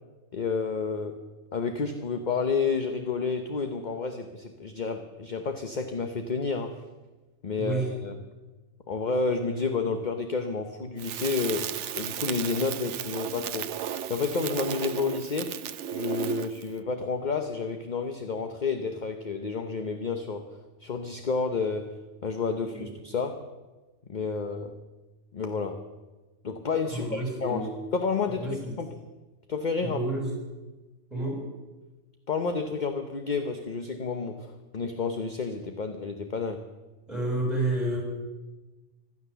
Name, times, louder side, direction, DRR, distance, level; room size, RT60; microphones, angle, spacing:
voice 1, 0.3-1.2 1.5-6.8 7.4-8.2 8.9-13.7 14.1-15.6 15.9-20.4 20.8-22.0 22.2-23.5 24.1-24.7 25.3-25.8 26.4-28.9 29.5-30.0 32.3-36.6, left 4 dB, 40° left, 7 dB, 1.0 m, -30 dB
Crackle, 11.0-16.7, right 9 dB, 80° right, 1.0 m, -34 dB
voice 2, 26.9-27.7 28.3-28.7 29.8-30.3 31.1-31.3 37.1-38.0, right 1 dB, ahead, -2 dB, 6.4 m, -30 dB
16.0 x 12.0 x 6.9 m, 1.2 s
omnidirectional pair, 1.2 m